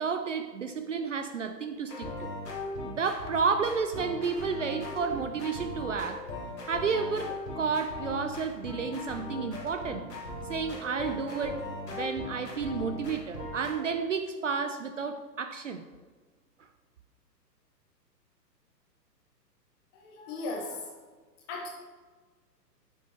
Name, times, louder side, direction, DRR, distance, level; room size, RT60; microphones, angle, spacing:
voice 1, 0.0-2.3 2.8-6.2 6.7-10.1 10.5-15.8, right 5 dB, 50° right, 8 dB, 0.5 m, -31 dB
sound 1, 1.9-13.8, left 2 dB, 75° left, 2.3 m, -39 dB
voice 2, 19.9-21.0 21.5-21.7, left 2 dB, 25° left, -1 dB, 1.6 m, -37 dB
9.8 x 7.1 x 3.1 m, 1.4 s
figure-of-eight pair, 125°, 50 cm